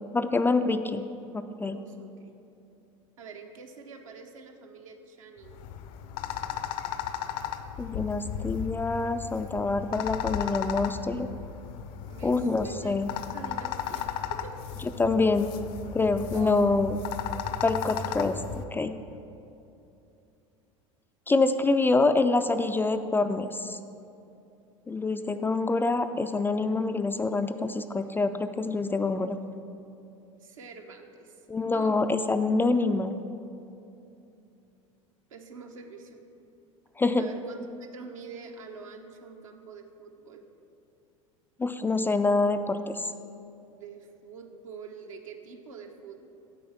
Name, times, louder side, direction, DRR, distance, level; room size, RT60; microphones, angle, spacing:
voice 1, 0.1-1.1 1.3-1.8 7.8-11.3 12.2-13.1 15.0-15.5 15.9-17.0 17.6-18.4 18.7-18.9 21.3-23.8 24.9-29.4 31.5-33.2 37.0-37.3 41.6-43.1, left 3 dB, 10° left, 8 dB, 0.3 m, -26 dB
voice 2, 1.7-2.3 3.2-5.7 12.0-12.9 13.3-14.6 16.3-16.9 30.3-31.4 31.7-32.0 35.3-36.2 37.2-40.4 43.7-46.3, right 5 dB, 75° right, 3 dB, 1.0 m, -45 dB
sound 1, 5.4-18.6, left 9 dB, 55° left, 0.6 m, -35 dB
8.8 x 4.8 x 7.2 m, 2.7 s
figure-of-eight pair, 75°, 17 cm